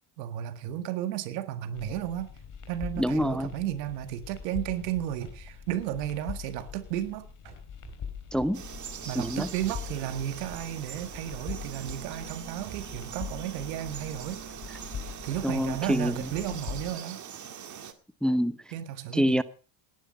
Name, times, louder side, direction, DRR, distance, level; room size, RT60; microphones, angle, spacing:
voice 1, 0.2-2.3 2.7-7.3 9.0-14.4 15.2-17.2 18.7-19.4, right 12 dB, 85° right, 11 dB, 1.8 m, -33 dB
sound 1, 1.7-16.9, left 7 dB, 40° left, 3.7 m, -43 dB
voice 2, 3.0-3.5 8.3-8.6 9.0-9.5 15.4-16.1 18.2-18.6 19.1-19.4, equal, ahead, 15 dB, 0.7 m, -26 dB
sound 2, 3.8-7.1 7.4-8.9 9.2-13.3, right 10 dB, 60° right, 5.4 m, -52 dB
Frog, 8.5-17.9, right 8 dB, 35° right, 2.0 m, -42 dB
17.5 x 11.0 x 5.3 m, 0.38 s
supercardioid pair, 95°, 49 cm